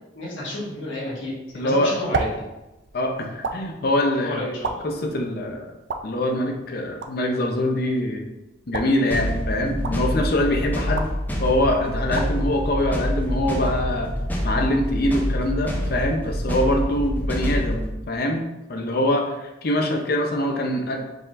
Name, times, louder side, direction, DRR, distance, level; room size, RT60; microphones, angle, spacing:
voice 1, 0.1-2.4 4.2-4.8, left 1 dB, 90° left, -6 dB, 1.3 m, -31 dB
voice 2, 1.5-1.9 2.9-4.4 4.8-5.7 6.0-8.2 8.7-11.1 11.4-14.1 14.4-18.4 18.7-21.0, left 1 dB, 55° left, 2 dB, 0.6 m, -24 dB
sound 1, 1.5-13.6, right 3 dB, 70° right, 0.4 m, -36 dB
sound 2, 9.1-17.9, equal, 10° left, 0.5 m, -26 dB
4.7 x 3.9 x 2.5 m, 1.0 s
head